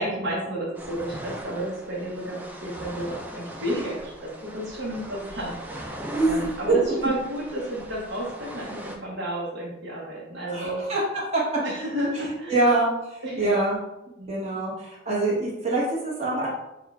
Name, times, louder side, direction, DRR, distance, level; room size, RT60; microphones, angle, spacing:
voice 1, 0.0-6.0 6.2-10.8 11.6-12.7 13.2-13.6 14.2-14.3, right 1 dB, 65° right, -6 dB, 1.0 m, -31 dB
sound 1, 0.7-9.0, right 1 dB, 10° right, 0.4 m, -39 dB
voice 2, 6.1-6.4 6.7-6.8 10.5-11.0 11.3-11.4 12.5-13.8 14.3-16.5, right 2 dB, 35° right, -6 dB, 1.2 m, -24 dB
6.5 x 2.3 x 2.4 m, 0.93 s
head